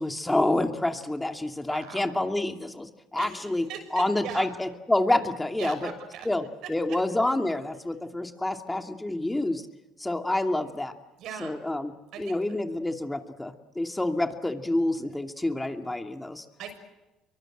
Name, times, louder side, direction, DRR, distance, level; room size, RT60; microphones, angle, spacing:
voice 1, 0.0-3.7 3.9-5.9 6.2-9.6 10.0-10.9 11.4-11.9 12.2-16.4, left 1 dB, 10° left, 5 dB, 2.6 m, -28 dB
voice 2, 1.6-2.2 3.2-4.5 5.6-6.3 11.2-11.5 12.1-12.4 16.6-16.7, right 7 dB, 70° right, 8 dB, 6.5 m, -39 dB
26.5 x 24.0 x 8.0 m, 1.0 s
hypercardioid pair, 65°, 0 cm